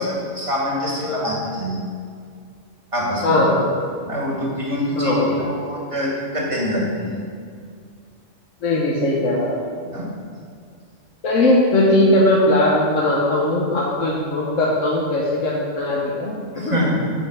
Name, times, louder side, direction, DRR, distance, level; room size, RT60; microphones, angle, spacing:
voice 1, 0.0-1.8 2.9-3.4 4.1-7.2 9.9-10.1 16.5-17.0, equal, 25° right, -4 dB, 1.9 m, -25 dB
voice 2, 3.2-3.6 5.0-5.3 8.6-9.5 9.8-9.9 11.2-16.8, left 1 dB, 75° left, -4 dB, 1.4 m, -19 dB
8.2 x 5.4 x 6.1 m, 2.2 s
omnidirectional pair, 1.4 m